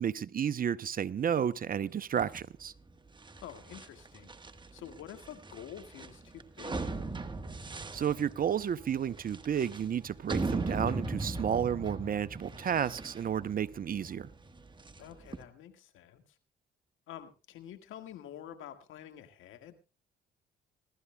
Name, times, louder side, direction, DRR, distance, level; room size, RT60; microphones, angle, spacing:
voice 1, 0.0-2.7 7.9-14.3, right 8 dB, 45° right, 16 dB, 0.7 m, -32 dB
sound 1, 2.2-15.4, right 3 dB, 20° right, 1.3 m, -39 dB
voice 2, 3.4-4.3 4.7-7.0 15.0-16.2 17.1-19.7, left 10 dB, 75° left, 8 dB, 1.7 m, -48 dB
25.5 x 12.5 x 2.2 m, 0.30 s
supercardioid pair, 65°, 21 cm